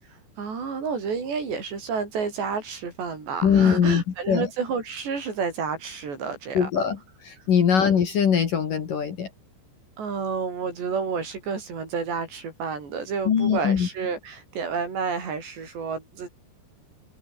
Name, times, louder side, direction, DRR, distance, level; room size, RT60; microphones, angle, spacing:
voice 1, 0.0-6.9 7.4-7.5 7.7-8.0 10.0-16.3, right 5 dB, 75° right, 8.4 m, -30 dB
voice 2, 3.4-4.5 6.6-7.0 7.2-9.3 13.3-13.9, left 7 dB, 55° left, 3.9 m, -21 dB
omnidirectional pair, 5.0 m